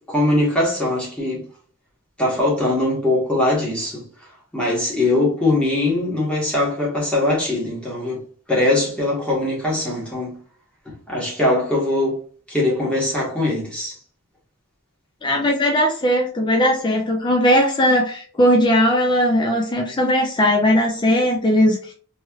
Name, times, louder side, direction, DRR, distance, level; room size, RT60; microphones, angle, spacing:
voice 1, 0.1-1.4 2.2-4.0 4.5-8.2 8.5-10.4 10.9-12.2 12.5-14.0, left 2 dB, 5° left, 1.2 m, -21 dB
voice 2, 15.2-21.9, equal, 20° left, 0.4 m, -18 dB
3.1 x 3.0 x 2.3 m
head